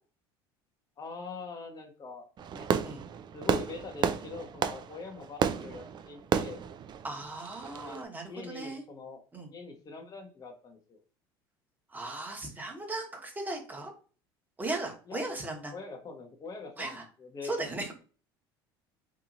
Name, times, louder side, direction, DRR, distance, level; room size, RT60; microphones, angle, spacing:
voice 1, 1.0-2.7 3.3-6.6 7.8-9.2 9.5-11.0 15.1-15.2 15.7-17.6, left 4 dB, 30° left, 3 dB, 0.7 m, -43 dB
Fireworks, 2.4-8.0, right 8 dB, 35° right, 0.4 m, -32 dB
voice 2, 7.0-8.8 9.3-9.5 11.9-13.9 14.6-15.7 16.8-17.1 17.4-18.0, right 2 dB, 15° right, 1 dB, 1.0 m, -37 dB
2.9 x 2.6 x 2.5 m, 0.38 s
hypercardioid pair, 75°, 13 cm